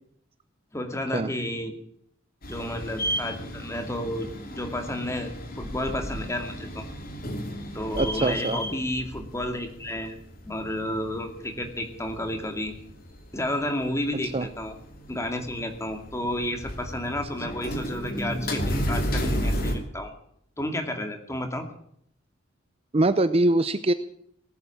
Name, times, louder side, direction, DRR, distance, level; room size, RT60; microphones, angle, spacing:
voice 1, 0.7-1.8 2.5-6.9 7.7-10.2 10.4-12.7 13.3-14.7 15.1-20.1 20.6-21.7, left 1 dB, 15° left, 5 dB, 2.3 m, -31 dB
sound 1, 2.4-19.7, equal, 50° left, 2.7 m, -33 dB
voice 2, 7.9-8.6 14.3-14.5 22.9-23.9, right 2 dB, 30° right, 12 dB, 0.6 m, -23 dB
19.0 x 8.4 x 8.5 m, 0.67 s
head